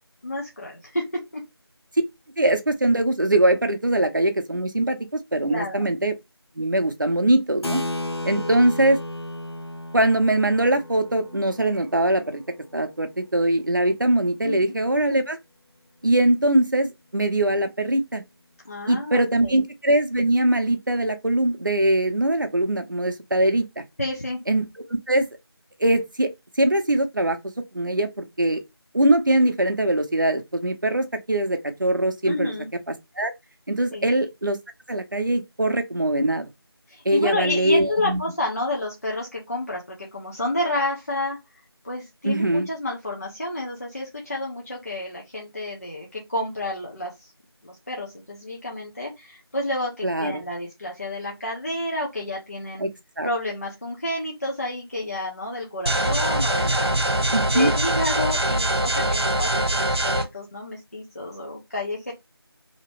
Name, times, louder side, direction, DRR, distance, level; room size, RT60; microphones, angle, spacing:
voice 1, 0.2-1.1 1.3-1.4 5.5-5.9 8.3-8.5 14.4-14.7 18.6-19.6 24.0-24.4 32.2-32.7 33.9-34.1 36.9-41.4 41.8-47.3 47.6-52.9 53.2-57.0 57.5-62.1, left 1 dB, 35° left, 0.8 m, -30 dB
voice 2, 2.4-6.1 6.6-7.8 8.2-9.0 9.9-12.4 12.7-15.4 16.0-18.2 18.9-23.8 24.5-24.7 25.1-25.3 25.8-26.3 26.6-27.4 27.7-28.6 28.9-32.5 32.9-33.3 33.7-34.6 34.9-36.5 37.0-38.2 42.2-42.7 50.0-50.4 52.8-52.9 53.2-53.3 57.3-57.7, right 1 dB, 50° right, 0.7 m, -22 dB
Keyboard (musical), 7.6-13.6, left 1 dB, 75° left, 0.7 m, -34 dB
sound 1, 55.9-60.2, right 1 dB, 70° right, 1.0 m, -23 dB
2.9 x 2.9 x 3.0 m
figure-of-eight pair, 170°, 14 cm